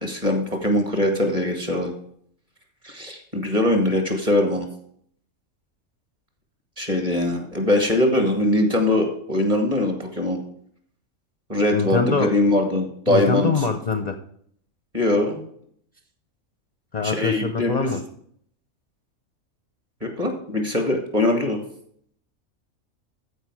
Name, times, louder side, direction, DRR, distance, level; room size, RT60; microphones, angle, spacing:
voice 1, 0.0-1.9 2.8-4.7 6.8-10.4 11.5-13.6 14.9-15.5 17.0-17.9 20.0-21.6, left 1 dB, 25° right, 3 dB, 2.1 m, -22 dB
voice 2, 11.7-12.3 13.1-14.2 16.9-18.0, left 4 dB, 35° left, 7 dB, 0.7 m, -24 dB
14.5 x 5.1 x 4.8 m, 0.64 s
omnidirectional pair, 1.5 m